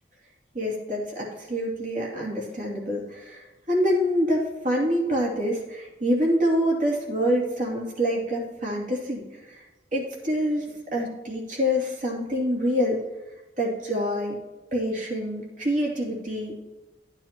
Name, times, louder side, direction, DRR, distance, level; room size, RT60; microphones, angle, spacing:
voice 1, 0.5-9.6 9.9-13.0 13.6-14.3 14.7-16.6, equal, 50° right, -3 dB, 2.7 m, -26 dB
12.0 x 9.0 x 3.0 m, 1.1 s
head